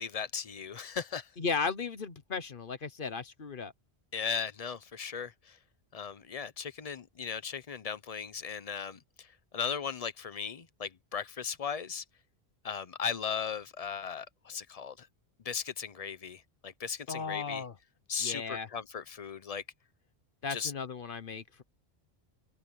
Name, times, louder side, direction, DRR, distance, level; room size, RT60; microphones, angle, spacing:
voice 1, 0.0-1.3 4.1-5.6 5.9-9.3 9.5-12.0 12.6-15.1 15.4-17.6 18.1-19.6 20.5-20.7, left 6 dB, 40° left, 0.8 m, -37 dB
voice 2, 1.4-3.7 17.1-17.8 18.2-18.7 20.4-21.6, left 5 dB, 55° left, 1.2 m, -35 dB
open air
omnidirectional pair, 1.1 m